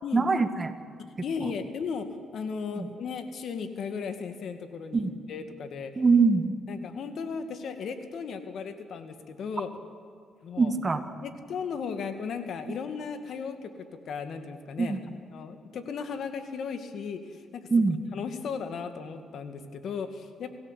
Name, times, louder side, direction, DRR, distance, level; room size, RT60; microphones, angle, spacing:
voice 1, 0.1-0.7 1.4-1.5 2.8-2.9 4.9-5.1 6.0-6.5 10.6-11.0 12.7-12.8 14.8-15.0 17.7-18.0, right 4 dB, 30° right, 9 dB, 1.8 m, -23 dB
voice 2, 1.2-2.1 2.3-5.9 6.7-9.7 10.4-10.7 11.2-13.7 14.1-15.0 15.3-17.7 18.1-20.5, left 6 dB, 65° left, 8 dB, 2.1 m, -36 dB
28.0 x 16.0 x 8.3 m, 2.2 s
cardioid pair, 90°, 0 cm